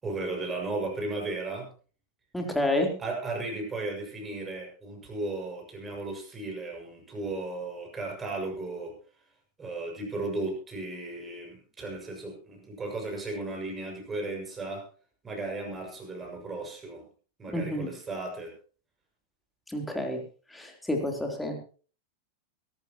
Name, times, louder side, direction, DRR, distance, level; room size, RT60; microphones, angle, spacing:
voice 1, 0.0-1.7 3.0-8.9 9.6-14.8 15.2-17.0 17.4-18.5, right 2 dB, 15° right, 1 dB, 6.4 m, -35 dB
voice 2, 2.3-2.9 17.5-17.9 19.7-20.2 20.5-21.6, left 1 dB, 5° left, 2 dB, 3.6 m, -29 dB
22.5 x 12.5 x 3.0 m, 0.39 s
figure-of-eight pair, 90°, 0 cm